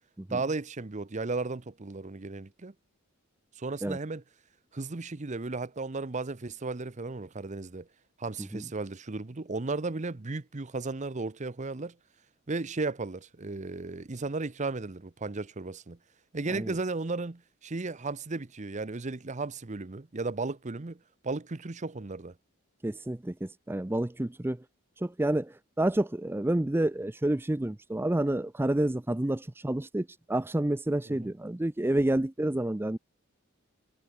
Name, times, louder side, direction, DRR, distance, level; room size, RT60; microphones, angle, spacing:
voice 1, 0.3-2.7 3.6-4.2 4.7-7.9 8.2-12.0 12.5-16.0 16.3-22.3 31.1-31.3, right 3 dB, 35° right, 0.8 m, -35 dB
voice 2, 22.8-24.6 25.0-33.0, right 1 dB, 10° right, 0.5 m, -29 dB
head